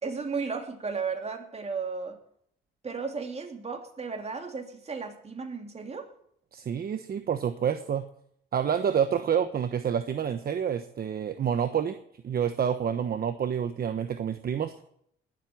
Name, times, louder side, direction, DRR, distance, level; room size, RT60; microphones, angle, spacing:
voice 1, 0.0-2.2 2.8-6.1, right 5 dB, 30° right, 3 dB, 3.0 m, -34 dB
voice 2, 6.5-8.0 8.5-12.0 12.2-14.8, right 8 dB, 50° right, 9 dB, 1.1 m, -28 dB
20.0 x 7.9 x 7.2 m, 0.70 s
cardioid pair, 90°, 20 cm